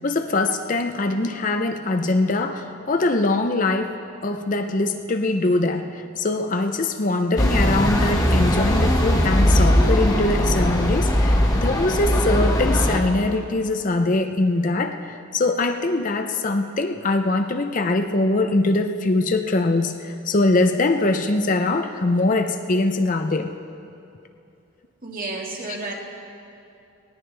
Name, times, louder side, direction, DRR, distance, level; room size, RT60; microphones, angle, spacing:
voice 1, 0.0-4.0 4.2-23.6, left 2 dB, 40° left, 7 dB, 0.6 m, -22 dB
sound 1, 7.4-13.0, equal, 20° left, 1.3 m, -19 dB
voice 2, 25.0-25.9, right 3 dB, 40° right, -1 dB, 2.0 m, -31 dB
19.0 x 17.5 x 3.3 m, 2.7 s
head